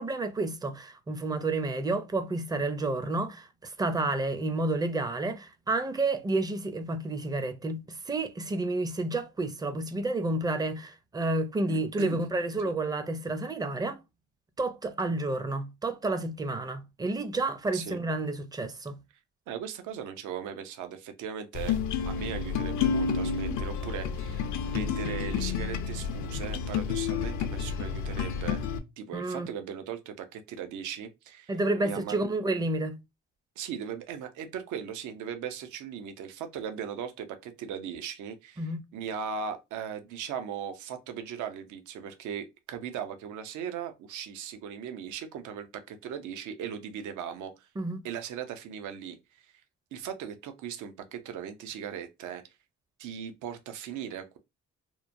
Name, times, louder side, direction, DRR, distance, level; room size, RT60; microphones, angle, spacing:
voice 1, 0.0-14.0 14.6-19.0 29.1-29.5 31.5-33.0 38.6-38.8 47.8-48.0, right 2 dB, 15° right, 0.4 m, -30 dB
voice 2, 11.7-12.2 17.7-18.0 19.5-21.8 22.0-28.6 29.0-31.5 31.8-32.3 33.6-38.6 38.9-47.7 48.0-49.5 49.9-52.4 53.0-54.4, right 8 dB, 80° right, 0.5 m, -38 dB
sound 1, 21.5-28.8, left 6 dB, 75° left, 0.5 m, -30 dB
2.9 x 2.1 x 2.5 m
cardioid pair, 90°, 30 cm